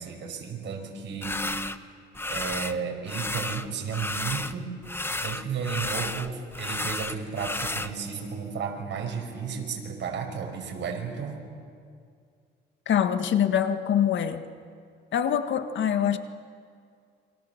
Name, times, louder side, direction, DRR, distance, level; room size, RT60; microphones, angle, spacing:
voice 1, 0.0-1.4 2.3-4.7 5.2-11.5, right 6 dB, 65° right, 2 dB, 5.5 m, -33 dB
sound 1, 1.2-1.8 2.1-2.8 3.1-4.6 4.8-7.9, left 2 dB, 10° left, 1.0 m, -32 dB
voice 2, 12.9-14.4 15.1-16.2, left 9 dB, 70° left, 9 dB, 1.7 m, -24 dB
28.5 x 25.0 x 7.3 m, 2.3 s
cardioid pair, 90°, 20 cm